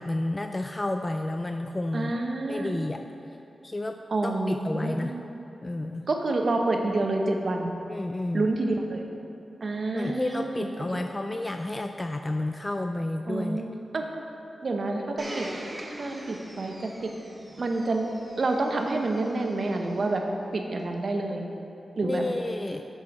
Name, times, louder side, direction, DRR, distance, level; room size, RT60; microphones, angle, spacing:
voice 1, 0.0-2.1 2.5-3.0 3.3-3.4 3.6-5.2 5.6-6.1 7.9-8.5 9.9-13.6 22.0-22.8, left 2 dB, 30° left, 6 dB, 0.3 m, -31 dB
voice 2, 1.9-2.7 4.1-5.3 6.1-7.7 8.3-9.0 9.6-11.0 13.3-14.0 14.6-15.5 16.0-17.1 17.6-18.1 18.4-20.2 20.5-21.5 22.0-22.2, right 2 dB, 60° right, 3 dB, 0.8 m, -28 dB
Domestic sounds home sounds, 15.2-20.0 20.8-20.9, right 1 dB, 30° right, 0.9 m, -42 dB
7.5 x 5.6 x 4.9 m, 3.0 s
cardioid pair, 50°, 0 cm